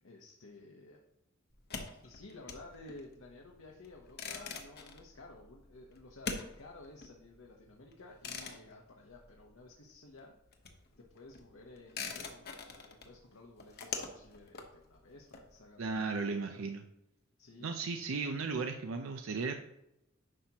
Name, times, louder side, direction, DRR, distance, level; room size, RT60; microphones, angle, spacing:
voice 1, 0.0-1.0 2.0-10.3 11.1-16.7 17.4-18.4 18.8-19.2, left 2 dB, 75° left, 0 dB, 1.0 m, -54 dB
sound 1, 1.5-9.9 10.1-15.9, left 4 dB, 50° left, 1.0 m, -45 dB
voice 2, 15.8-16.8 17.6-19.5, right 4 dB, 85° right, 5 dB, 0.6 m, -35 dB
9.8 x 5.9 x 2.9 m, 0.85 s
head